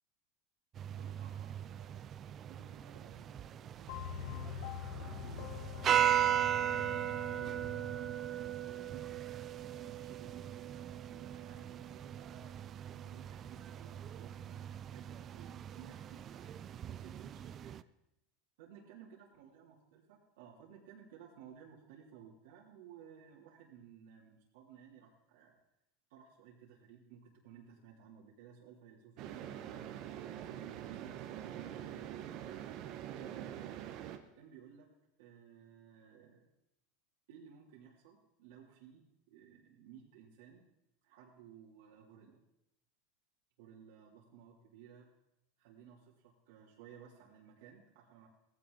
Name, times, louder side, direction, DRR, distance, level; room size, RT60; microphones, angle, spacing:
sound 1, 0.8-17.8, right 10 dB, 25° right, 0.4 m, -38 dB
voice 1, 0.9-4.3 4.9-6.2 6.5-12.5 12.9-17.7 18.6-25.6 26.1-32.4 33.1-33.7 34.3-34.9 35.2-36.5 37.3-40.6 41.0-42.4 43.6-45.1 45.6-48.3, right 8 dB, 70° right, -4 dB, 2.9 m, -57 dB
sound 2, 3.9-8.1, left 8 dB, 60° left, 0.9 m, -45 dB
sound 3, 29.2-34.2, right 11 dB, 40° right, 1.2 m, -44 dB
17.5 x 15.5 x 3.9 m, 0.87 s
supercardioid pair, 160°, 0 cm